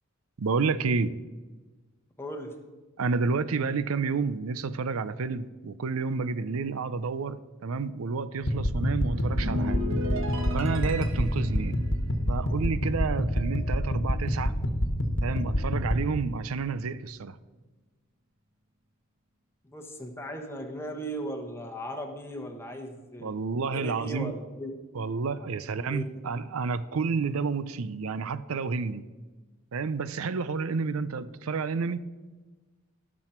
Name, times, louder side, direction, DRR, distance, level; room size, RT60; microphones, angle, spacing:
voice 1, 0.4-1.2 3.0-9.8 10.5-11.8 12.3-14.5 15.2-17.4 23.2-24.3 24.9-29.0 29.7-32.0, right 4 dB, 85° right, 15 dB, 0.5 m, -30 dB
voice 2, 2.2-2.5 19.6-23.3 23.7-24.7 25.8-26.0, equal, 10° left, 2 dB, 1.1 m, -37 dB
sound 1, 8.4-16.0, equal, 60° left, 1.3 m, -28 dB
sound 2, 8.8-13.5 13.8-14.1, equal, 65° right, 1.3 m, -36 dB
17.5 x 6.3 x 4.4 m, 1.3 s
head